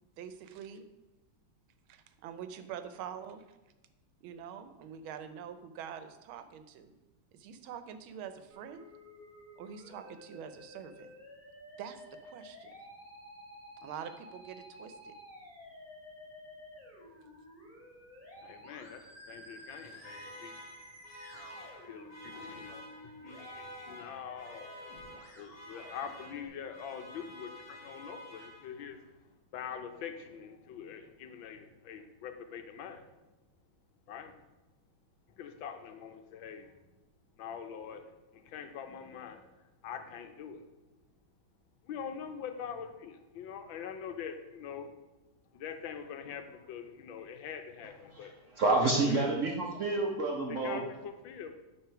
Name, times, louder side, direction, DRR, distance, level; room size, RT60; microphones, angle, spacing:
voice 1, 0.2-0.8 1.9-3.6 4.2-6.9 7.3-8.9 9.6-11.1 11.8-12.7 13.8-15.2, right 8 dB, 90° right, 10 dB, 1.5 m, -45 dB
Musical instrument, 8.5-26.5, equal, 20° right, 2.3 m, -52 dB
voice 2, 18.4-20.6 21.3-24.7 25.4-29.0 29.5-33.1 34.1-34.4 35.3-36.8 37.4-40.7 41.8-45.0 45.5-48.4 48.8-49.4 50.5-51.6, left 7 dB, 75° left, 7 dB, 1.4 m, -44 dB
Alarm, 19.6-29.0, left 1 dB, 40° left, 0.9 m, -50 dB
voice 3, 48.2-50.8, right 2 dB, 60° right, 1 dB, 0.8 m, -29 dB
8.9 x 3.7 x 5.6 m, 1.1 s
omnidirectional pair, 2.2 m